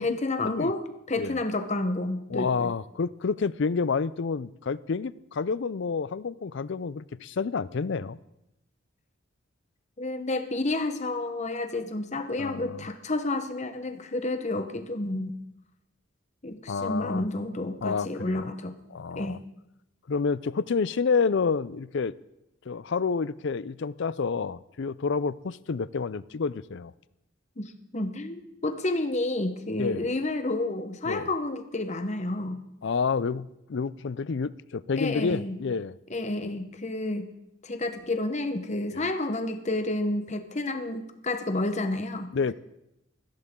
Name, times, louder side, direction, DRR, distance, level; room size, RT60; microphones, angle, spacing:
voice 1, 0.0-2.7 10.0-15.3 16.4-18.7 19.2-19.4 27.6-32.6 35.0-35.6 36.1-37.3 37.6-42.5, left 2 dB, 35° left, 8 dB, 1.0 m, -30 dB
voice 2, 2.3-8.2 12.4-12.8 16.7-17.2 17.8-18.5 18.9-19.4 20.1-22.1 22.7-26.9 29.8-30.1 31.0-31.3 32.8-35.9 38.9-39.0 42.3-42.5, left 5 dB, 60° left, 19 dB, 0.5 m, -29 dB
21.0 x 15.0 x 3.7 m, 0.86 s
head